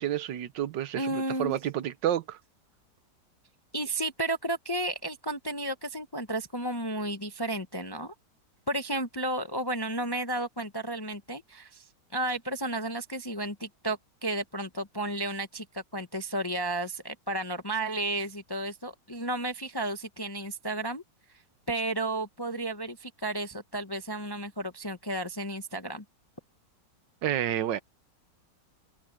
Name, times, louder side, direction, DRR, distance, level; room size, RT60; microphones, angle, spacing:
voice 1, 0.0-2.4 27.2-27.8, right 11 dB, 85° right, 1.5 m, -30 dB
voice 2, 0.9-1.6 3.7-8.1 8.7-21.0 21.7-26.0, right 1 dB, 20° left, 0.7 m, -33 dB
omnidirectional pair, 1.9 m